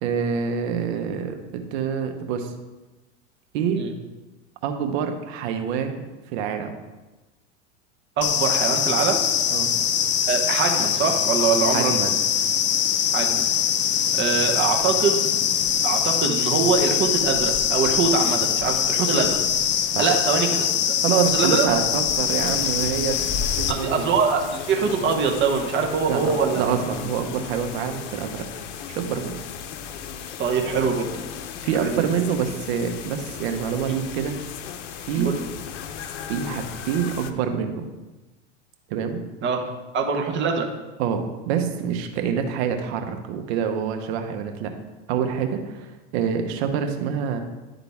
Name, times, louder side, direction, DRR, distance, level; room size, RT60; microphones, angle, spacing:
voice 1, 0.0-2.5 3.5-3.9 4.6-6.1 6.3-6.7 9.5-9.7 11.7-12.2 19.9-20.1 21.0-23.3 23.6-24.1 26.1-28.4 28.9-29.3 31.6-34.4 35.1-35.3 36.3-37.9 38.9-39.2 41.0-44.7 45.1-47.4, right 7 dB, 65° right, 6 dB, 1.0 m, -26 dB
sound 1, 8.2-23.7, left 9 dB, 30° left, 0.5 m, -23 dB
voice 2, 8.2-9.2 10.3-12.0 13.1-13.5 14.1-15.3 15.8-19.4 20.0-21.0 21.3-21.8 23.7-26.8 30.4-31.1 31.8-32.0 35.2-35.4 39.4-39.7 39.9-40.7, right 5 dB, 30° right, 2 dB, 1.1 m, -23 dB
sound 2, 22.3-37.3, left 8 dB, 85° left, 0.7 m, -36 dB
11.0 x 3.9 x 3.5 m, 1.1 s
hypercardioid pair, 110°, 35 cm